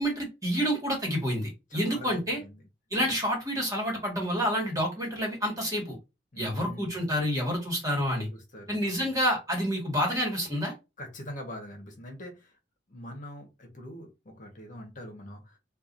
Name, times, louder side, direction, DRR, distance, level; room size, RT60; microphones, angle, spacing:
voice 1, 0.0-2.4 2.9-6.0 6.4-8.3 8.7-10.7, equal, 20° right, 1.7 m, -28 dB
voice 2, 1.7-2.1 2.4-2.6 6.3-7.0 8.3-9.1 11.0-12.5 12.9-15.6, left 1 dB, 45° left, 1.3 m, -43 dB
4.6 x 2.6 x 2.6 m
head